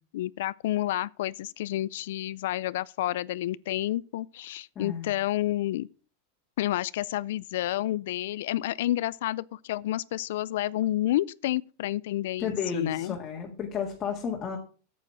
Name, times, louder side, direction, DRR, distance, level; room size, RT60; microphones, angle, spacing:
voice 1, 0.1-5.9 6.6-13.2, left 14 dB, 70° left, 0.4 m, -30 dB
voice 2, 4.8-5.1 12.4-14.6, left 7 dB, 20° left, 1.8 m, -32 dB
9.0 x 8.4 x 5.8 m
supercardioid pair, 160°, 0 cm